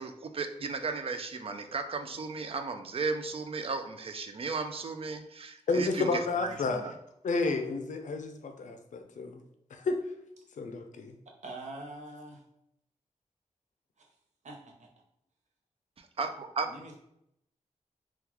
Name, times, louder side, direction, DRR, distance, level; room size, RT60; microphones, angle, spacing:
voice 1, 0.0-6.9 16.0-16.7, right 4 dB, 50° right, 7 dB, 0.4 m, -35 dB
voice 2, 5.7-6.8 7.2-9.4 9.7-10.0 10.6-11.1, left 3 dB, 85° left, 6 dB, 0.5 m, -31 dB
voice 3, 11.4-12.4 14.0-14.1 14.4-14.9 16.7-17.0, right 2 dB, 70° right, 0 dB, 0.7 m, -44 dB
3.7 x 2.3 x 2.9 m, 0.77 s
wide cardioid pair, 125°, 13 cm